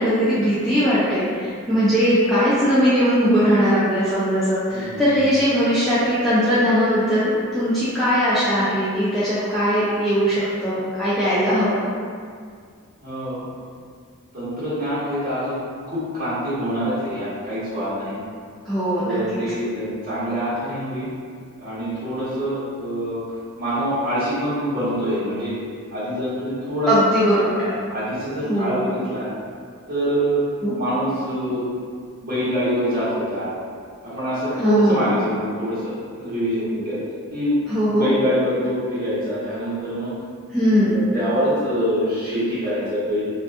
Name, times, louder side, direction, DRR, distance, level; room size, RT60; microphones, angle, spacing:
voice 1, 0.0-11.8 18.7-19.2 26.9-27.7 28.4-28.8 30.6-30.8 34.6-35.0 37.7-38.1 40.5-41.0, equal, ahead, -14 dB, 0.4 m, -19 dB
voice 2, 4.7-5.0 13.0-13.5 14.3-15.6 15.9-18.2 19.0-21.1 21.6-23.2 23.6-25.6 25.9-26.9 27.5-29.3 29.9-30.4 30.7-31.6 32.2-33.5 34.0-37.0 37.3-37.5 37.9-40.1 40.6-43.2, equal, 40° right, -13 dB, 1.2 m, -25 dB
2.5 x 2.4 x 2.4 m, 2.1 s
head